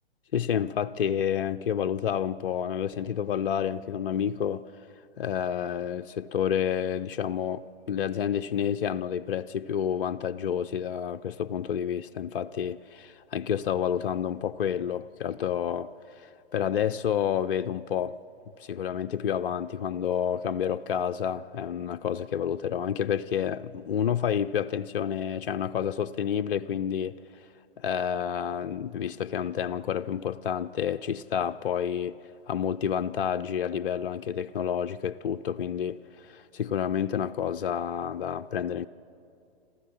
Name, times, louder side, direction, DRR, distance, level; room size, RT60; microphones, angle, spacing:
voice 1, 0.3-4.6 5.2-18.2 18.6-27.2 27.8-32.2 32.5-38.9, left 8 dB, 60° left, 0.5 m, -29 dB
27.0 x 14.0 x 7.1 m
figure-of-eight pair, 120°, 31 cm